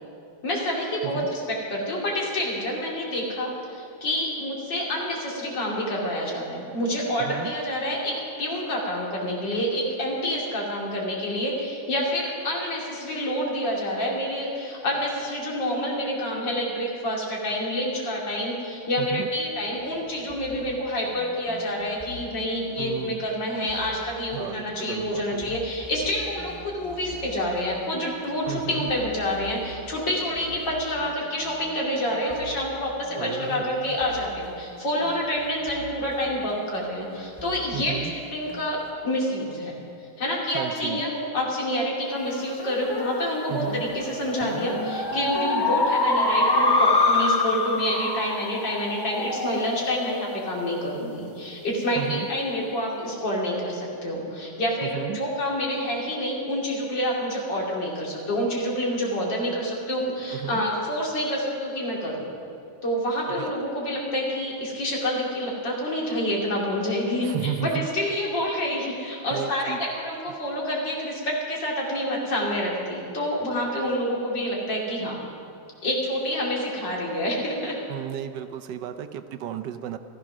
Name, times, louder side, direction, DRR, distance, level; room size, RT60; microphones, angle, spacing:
voice 1, 0.4-39.8 40.2-62.3 62.8-75.2 75.8-77.8, equal, 80° left, -3 dB, 3.4 m, -28 dB
voice 2, 7.2-7.5 19.0-19.3 22.8-23.3 24.3-25.6 28.5-28.9 33.1-34.0 37.7-38.1 40.5-41.0 43.5-43.9 51.9-52.3 54.8-55.2 60.3-60.6 63.3-63.5 67.2-67.9 69.3-69.8 77.9-80.0, right 10 dB, 75° right, 9 dB, 1.3 m, -33 dB
sound 1, 19.2-38.9, left 1 dB, 5° right, 2.3 m, -46 dB
sound 2, 42.3-51.1, left 2 dB, 40° left, 0.3 m, -26 dB
15.0 x 13.5 x 6.1 m, 2.5 s
omnidirectional pair, 1.9 m